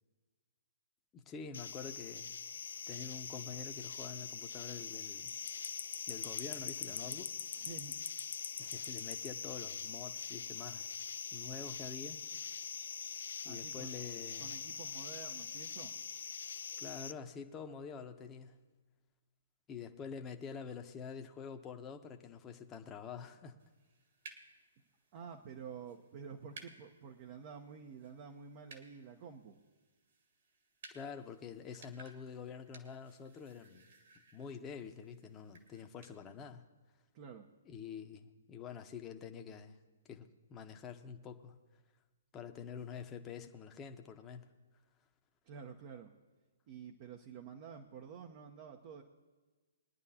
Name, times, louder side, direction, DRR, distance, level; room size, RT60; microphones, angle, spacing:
voice 1, 1.1-2.3 2.9-5.3 6.1-7.3 8.6-10.9 11.3-12.2 13.4-14.5 16.8-18.5 19.7-23.6 30.9-33.8 34.3-36.6 37.7-39.8 40.1-41.5 42.3-44.4, left 6 dB, 20° left, 5 dB, 1.0 m, -47 dB
sound 1, 1.5-17.1, left 7 dB, 65° left, 0.5 m, -43 dB
voice 2, 7.5-7.9 13.5-13.9 14.4-16.0 25.1-29.6 37.1-37.5 45.5-46.1 46.7-49.0, right 6 dB, 40° right, 3 dB, 0.9 m, -49 dB
sound 2, 23.6-36.2, right 3 dB, 55° right, 2.1 m, -60 dB
22.5 x 10.5 x 2.9 m, 1.3 s
figure-of-eight pair, 125°, 0 cm